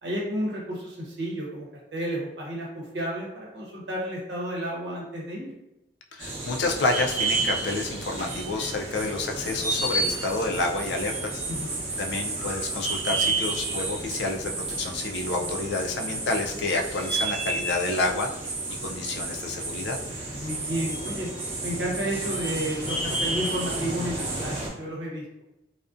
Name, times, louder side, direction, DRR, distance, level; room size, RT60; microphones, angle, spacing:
voice 1, 0.0-5.5 11.5-12.0 20.3-21.3 21.6-25.2, right 1 dB, 75° right, -3 dB, 0.8 m, -32 dB
voice 2, 6.1-11.4 12.0-14.5 14.8-18.3 18.8-20.0, left 3 dB, 70° left, 2 dB, 0.3 m, -29 dB
sound 1, 6.2-24.7, right 2 dB, 35° right, 0.7 m, -31 dB
2.4 x 2.1 x 2.4 m, 0.89 s
head